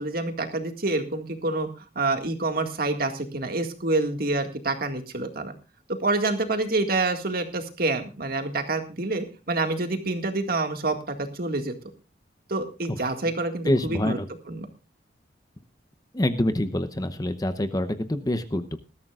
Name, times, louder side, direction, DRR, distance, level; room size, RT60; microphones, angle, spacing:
voice 1, 0.0-1.7 2.0-5.5 6.0-11.7 12.5-14.2 14.5-14.7, right 2 dB, 55° right, 6 dB, 1.9 m, -27 dB
voice 2, 13.7-14.3 16.1-18.8, left 1 dB, 20° left, 10 dB, 0.8 m, -26 dB
20.0 x 13.5 x 2.4 m, 0.30 s
head